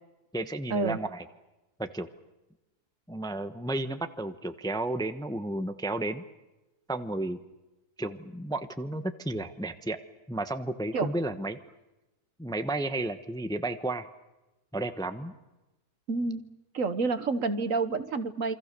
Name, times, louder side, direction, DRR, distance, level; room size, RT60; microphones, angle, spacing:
voice 1, 0.3-1.2 1.8-2.1 3.1-6.2 6.9-7.4 8.0-10.0 10.3-11.6 12.4-14.1 14.7-15.3, right 2 dB, 5° left, 9 dB, 1.0 m, -32 dB
voice 2, 16.1-16.4 16.7-18.6, right 4 dB, 55° right, 11 dB, 1.6 m, -29 dB
28.0 x 25.0 x 6.8 m, 1.0 s
omnidirectional pair, 1.7 m